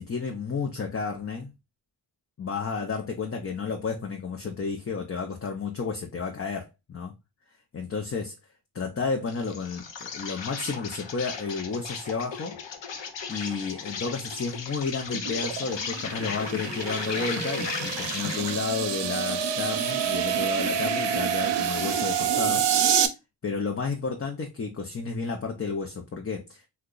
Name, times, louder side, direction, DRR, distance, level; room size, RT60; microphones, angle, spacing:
voice 1, 0.0-1.5 2.4-7.1 7.7-8.3 8.7-12.5 13.3-22.7 23.4-26.6, left 4 dB, 30° left, 0.6 m, -32 dB
Insect, 9.3-18.6, left 5 dB, 65° left, 0.8 m, -36 dB
sound 1, 15.1-23.1, right 8 dB, 65° right, 0.6 m, -27 dB
2.9 x 2.2 x 3.7 m
cardioid pair, 60°, 46 cm